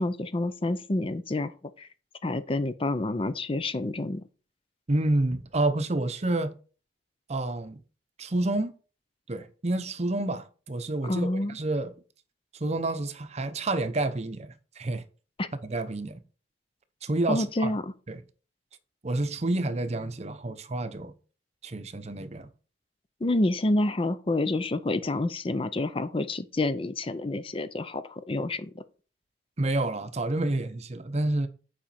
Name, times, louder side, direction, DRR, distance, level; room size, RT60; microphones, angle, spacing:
voice 1, 0.0-1.5 1.8-1.9 2.2-4.2 11.1-11.6 15.4-15.5 17.3-17.9 23.2-28.8, left 2 dB, 30° left, 0.5 m, -28 dB
voice 2, 4.9-6.5 7.3-7.8 8.2-8.7 9.3-11.9 12.5-15.0 15.6-16.2 17.0-17.8 18.1-18.2 19.0-21.1 21.6-22.5 29.6-31.5, right 2 dB, 40° right, 0.7 m, -29 dB
8.9 x 5.0 x 4.3 m
head